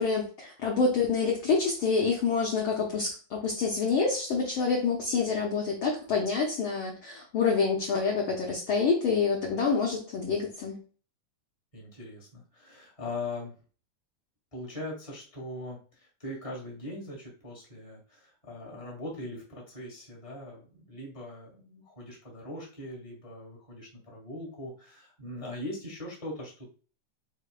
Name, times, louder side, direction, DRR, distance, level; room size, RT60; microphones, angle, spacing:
voice 1, 0.0-10.8, left 5 dB, 70° left, -1 dB, 1.2 m, -27 dB
voice 2, 11.7-13.5 14.5-26.7, left 2 dB, 15° left, -3 dB, 1.2 m, -41 dB
8.4 x 2.9 x 2.2 m, 0.38 s
omnidirectional pair, 3.5 m